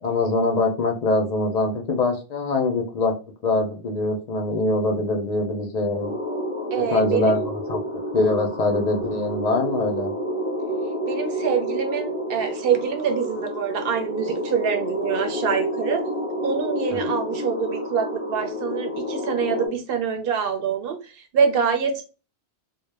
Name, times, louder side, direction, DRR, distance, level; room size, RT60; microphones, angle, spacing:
voice 1, 0.0-3.1 3.4-6.1 6.9-10.1 16.9-17.0, left 2 dB, 65° left, 3 dB, 0.4 m, -23 dB
sound 1, 6.0-19.7, equal, 10° right, 0.6 m, -29 dB
voice 2, 6.7-7.4 11.1-16.0 16.4-22.0, right 6 dB, 60° right, 5 dB, 0.7 m, -25 dB
2.1 x 2.0 x 3.2 m, 0.34 s
omnidirectional pair, 1.2 m